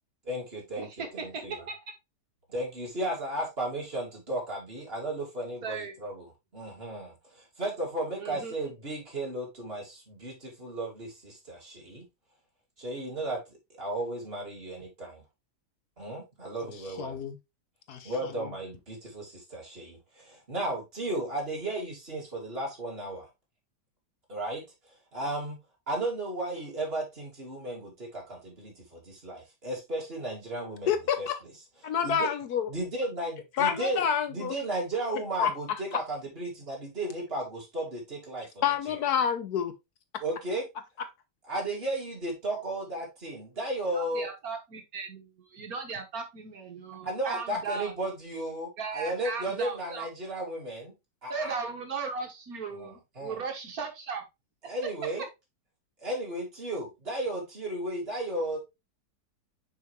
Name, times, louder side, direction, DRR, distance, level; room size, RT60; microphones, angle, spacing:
voice 1, 0.2-1.6 2.5-6.3 6.5-12.1 12.8-15.2 16.0-17.2 18.0-23.3 24.3-24.6 25.1-25.6 25.9-30.9 31.2-31.3 32.0-32.3 32.7-34.0 34.3-39.0 40.2-40.7 41.4-44.3 47.0-50.9 51.2-51.5 52.7-53.4 54.6-55.2 56.0-58.6, right 1 dB, 35° right, 2.8 m, -34 dB
voice 2, 0.7-1.8 5.6-5.9 8.2-8.5 43.9-47.9 48.8-50.1 51.3-54.2, right 5 dB, 60° right, 1.7 m, -37 dB
voice 3, 17.0-17.4 17.9-18.1 30.9-31.4 31.8-32.7 33.6-34.6 35.4-35.5 35.9-36.0 38.6-39.7, left 8 dB, 70° left, 1.3 m, -28 dB
6.4 x 5.1 x 3.1 m
omnidirectional pair, 1.8 m